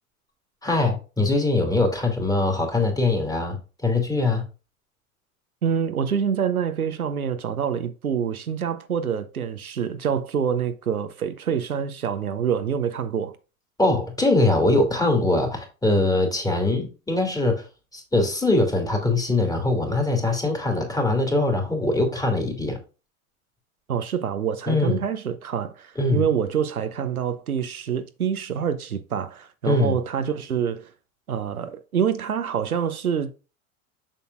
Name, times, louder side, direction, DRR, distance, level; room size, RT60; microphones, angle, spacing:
voice 1, 0.6-3.6 3.8-4.5 13.8-17.6 17.9-22.8 24.7-25.0 26.0-26.2 29.6-30.0, left 2 dB, 10° left, 2.5 m, -22 dB
voice 2, 5.6-13.4 23.9-30.9 31.3-33.3, right 7 dB, 80° right, 0.7 m, -26 dB
7.3 x 6.8 x 2.4 m
figure-of-eight pair, 80°, 43 cm